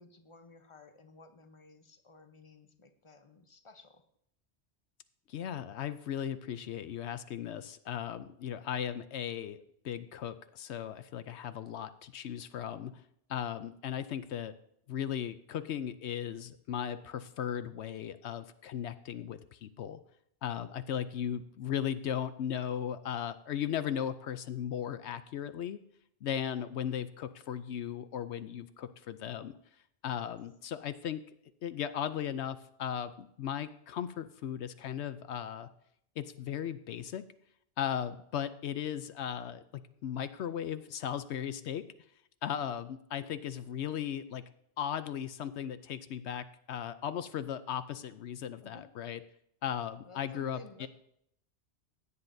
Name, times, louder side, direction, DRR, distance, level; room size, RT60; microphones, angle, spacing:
voice 1, 0.0-4.0 48.6-48.9 50.1-50.9, left 2 dB, 30° left, 8 dB, 0.8 m, -55 dB
voice 2, 5.3-9.6 9.8-13.0 13.3-14.5 14.9-20.0 20.4-25.8 26.2-29.6 30.0-31.3 31.6-35.7 36.2-37.2 37.8-39.6 40.0-41.8 42.4-44.4 44.8-49.2 49.6-50.9, left 9 dB, 75° left, 12 dB, 0.9 m, -37 dB
16.0 x 9.7 x 2.7 m, 0.72 s
omnidirectional pair, 1.2 m